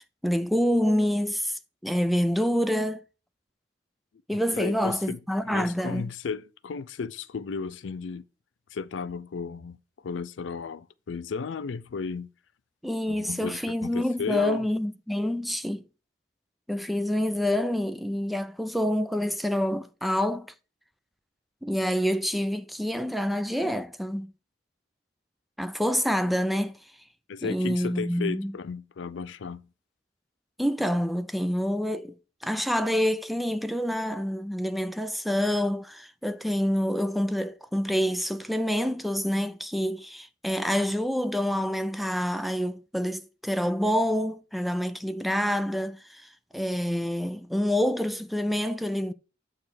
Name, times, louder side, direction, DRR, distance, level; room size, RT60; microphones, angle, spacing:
voice 1, 0.2-3.0 4.3-6.1 12.8-15.8 16.7-20.5 21.6-24.3 25.6-26.8 27.4-28.5 30.6-32.2 32.4-46.3 46.5-49.1, equal, ahead, 0.4 m, -27 dB
voice 2, 4.3-5.2 5.4-8.2 8.7-9.8 10.0-12.3 13.1-14.7 27.3-29.7, left 5 dB, 90° left, 0.4 m, -34 dB
8.5 x 3.2 x 6.1 m
head